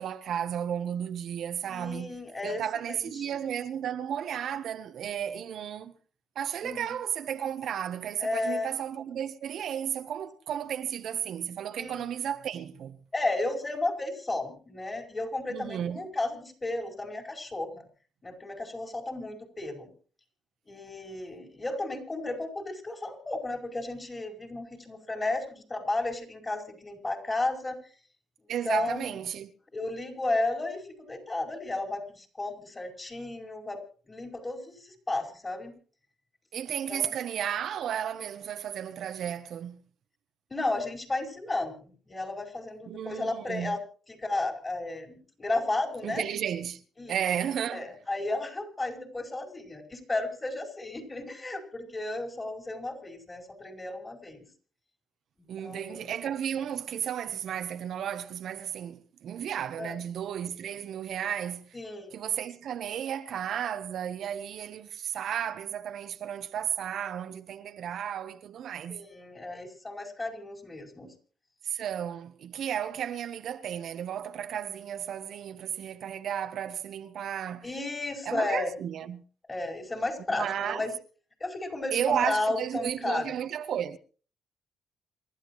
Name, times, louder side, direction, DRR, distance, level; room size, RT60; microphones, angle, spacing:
voice 1, 0.0-2.1 2.4-6.0 6.3-13.0 15.5-16.1 28.5-29.5 36.5-39.8 42.8-43.8 46.0-46.8 47.1-47.9 55.5-61.7 62.1-69.0 71.6-77.7 78.2-79.2 80.3-80.8 81.9-84.0, right 9 dB, 70° right, 1.0 m, -33 dB
voice 2, 1.7-3.4 6.6-7.0 8.2-8.7 11.8-12.1 13.1-17.9 18.2-19.9 20.7-27.8 28.6-29.2 29.7-33.8 34.1-35.7 36.9-37.2 40.5-43.8 44.1-46.2 47.0-47.2 47.7-54.5 55.4-56.1 59.8-59.9 61.7-62.1 68.9-71.1 77.6-78.7 79.5-80.9 81.4-83.3, left 2 dB, 25° left, 4.9 m, -33 dB
28.0 x 12.5 x 3.1 m
cardioid pair, 90°, 0 cm